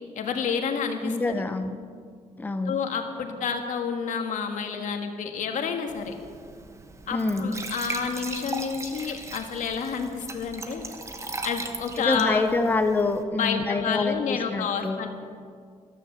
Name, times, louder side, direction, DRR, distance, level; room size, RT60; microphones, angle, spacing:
voice 1, 0.2-1.4 2.7-6.2 7.1-10.9 11.4-12.4 13.3-15.1, left 6 dB, 70° left, 4 dB, 1.7 m, -29 dB
voice 2, 1.0-1.8 2.4-2.8 7.1-7.6 12.0-15.1, left 3 dB, 15° left, 8 dB, 0.7 m, -26 dB
Glass / Trickle dribble / Fill (with liquid), 5.9-13.2, right 3 dB, 20° right, 1.0 m, -38 dB
14.0 x 12.5 x 6.9 m, 2.1 s
wide cardioid pair, 165°, 14 cm